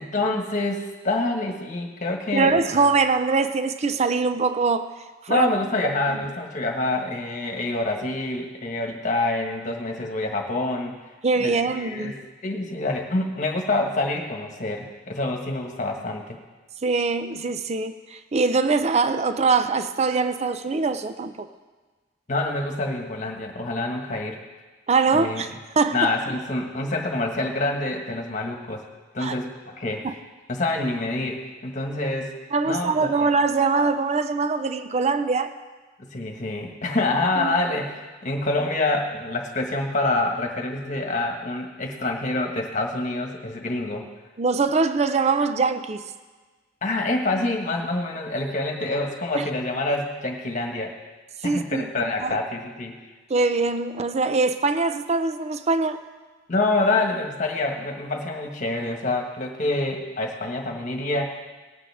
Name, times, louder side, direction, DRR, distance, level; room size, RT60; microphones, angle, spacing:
voice 1, 0.0-2.5 5.3-11.0 11.4-12.1 12.4-16.4 22.3-24.4 25.1-25.4 25.9-28.9 29.1-30.1 30.5-32.3 32.6-33.3 36.0-44.0 46.8-50.9 51.4-52.9 56.5-61.4, left 2 dB, 40° left, 1.6 m, -26 dB
voice 2, 2.3-4.9 5.2-5.5 5.8-6.2 11.2-12.1 16.8-21.5 24.9-26.1 29.2-29.3 30.0-30.1 32.5-35.5 37.4-37.5 44.4-46.1 49.3-49.5 51.4-51.9 52.2-52.4 53.3-56.0, right 4 dB, 35° right, 0.5 m, -23 dB
19.0 x 9.2 x 3.6 m
head